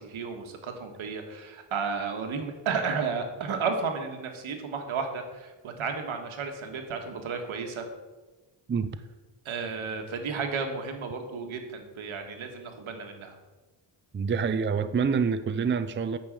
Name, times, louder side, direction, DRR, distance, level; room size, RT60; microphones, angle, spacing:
voice 1, 0.0-7.9 9.4-13.4, right 5 dB, 85° right, 4 dB, 1.7 m, -33 dB
voice 2, 14.1-16.2, right 6 dB, 25° right, 12 dB, 0.5 m, -26 dB
9.2 x 6.4 x 7.6 m, 1.2 s
cardioid pair, 105°, 47 cm